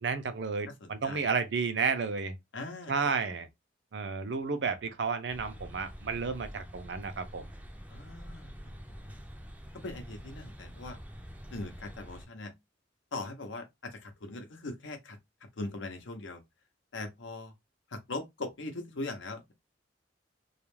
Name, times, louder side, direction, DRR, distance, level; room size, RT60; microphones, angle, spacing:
voice 1, 0.0-2.4 2.9-3.5 3.9-7.5, right 5 dB, 65° right, 0.5 m, -32 dB
voice 2, 0.8-1.3 2.5-3.1 7.9-8.6 8.9-9.2 9.8-11.0 11.5-12.5 13.1-15.2 15.6-16.4 16.9-17.5 17.9-19.5, left 2 dB, 90° left, 0.7 m, -40 dB
sound 1, 5.3-12.3, equal, 10° right, 0.4 m, -46 dB
2.3 x 2.1 x 3.1 m
head